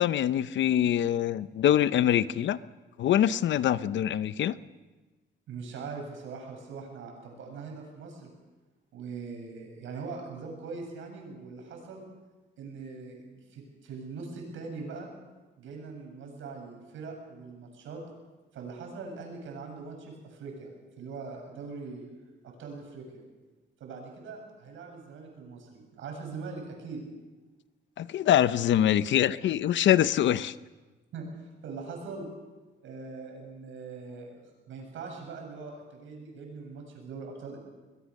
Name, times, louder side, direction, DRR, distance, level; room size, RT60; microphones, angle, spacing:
voice 1, 0.0-2.6 3.0-4.5 28.0-30.5, left 11 dB, 70° left, 15 dB, 0.8 m, -24 dB
voice 2, 5.5-8.3 8.9-12.0 12.6-15.1 15.6-18.0 18.5-20.7 21.0-22.1 22.4-23.2 23.8-27.0 31.1-32.3 32.8-37.6, right 4 dB, 80° right, 2 dB, 7.9 m, -41 dB
22.5 x 21.0 x 6.6 m, 1.2 s
cardioid pair, 90°, 20 cm